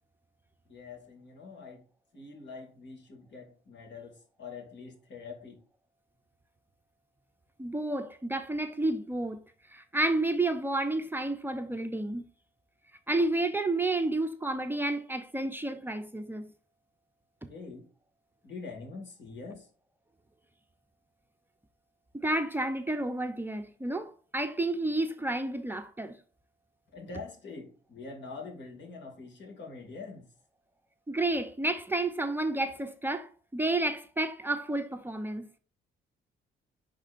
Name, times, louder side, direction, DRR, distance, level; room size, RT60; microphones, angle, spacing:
voice 1, 0.7-1.8 2.1-5.6 17.5-17.9 18.4-19.7 26.9-30.3, left 4 dB, 65° left, 2.3 m, -44 dB
voice 2, 7.6-9.4 9.7-12.2 13.1-16.5 22.1-26.2 31.1-35.5, right 2 dB, 10° right, 0.6 m, -30 dB
10.5 x 3.7 x 2.5 m
cardioid pair, 90°, 20 cm